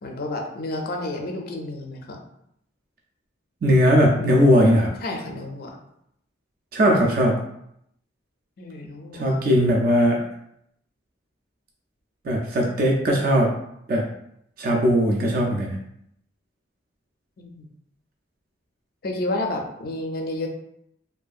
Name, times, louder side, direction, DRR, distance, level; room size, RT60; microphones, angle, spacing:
voice 1, 0.0-2.2 5.0-5.8 8.6-9.4 17.4-17.7 19.0-20.5, left 2 dB, 50° left, 2 dB, 0.4 m, -30 dB
voice 2, 3.6-4.9 6.7-7.4 9.1-10.3 12.2-13.5 13.9-14.1 14.6-15.8, equal, 45° right, -1 dB, 0.4 m, -19 dB
2.7 x 2.4 x 2.3 m, 0.74 s
head